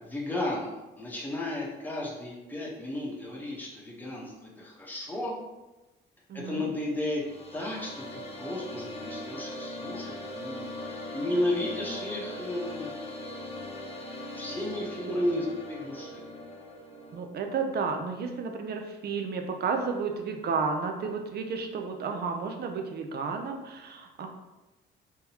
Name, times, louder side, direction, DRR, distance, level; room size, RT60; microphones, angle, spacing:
voice 1, 0.0-5.3 6.3-7.2 7.5-12.9 13.3-13.4 14.3-16.2, left 1 dB, 10° left, -4 dB, 1.0 m, -33 dB
voice 2, 6.3-6.7 15.3-15.4 17.1-24.3, right 5 dB, 55° right, 4 dB, 0.6 m, -32 dB
sound 1, 7.0-17.2, left 1 dB, 30° left, 0.7 m, -40 dB
3.6 x 2.9 x 2.9 m, 1.1 s
cardioid pair, 90°, 20 cm